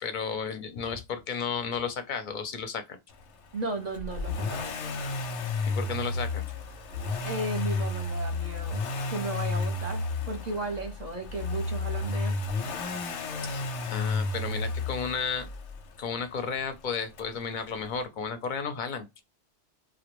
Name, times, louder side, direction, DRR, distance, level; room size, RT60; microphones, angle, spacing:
voice 1, 0.0-3.0 5.7-6.5 13.4-15.5 16.0-19.1, left 6 dB, 55° left, 0.6 m, -33 dB
voice 2, 3.5-4.7 7.2-8.8 9.1-12.4, right 3 dB, 45° right, 0.7 m, -35 dB
Accelerating revving vroom, 3.9-15.9 17.2-17.3, left 3 dB, 90° left, 0.9 m, -32 dB
2.2 x 2.1 x 2.9 m
omnidirectional pair, 1.2 m